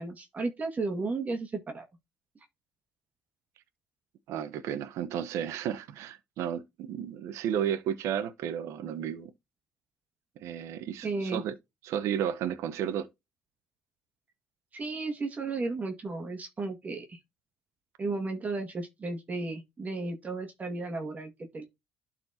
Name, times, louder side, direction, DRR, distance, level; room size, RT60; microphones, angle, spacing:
voice 1, 0.0-1.9 11.0-11.4 14.7-17.2 18.0-21.7, right 3 dB, 35° right, 1.9 m, -34 dB
voice 2, 4.3-9.3 10.4-11.5 11.8-13.1, right 9 dB, 80° right, 0.9 m, -33 dB
12.0 x 4.2 x 2.7 m
cardioid pair, 90°, 5 cm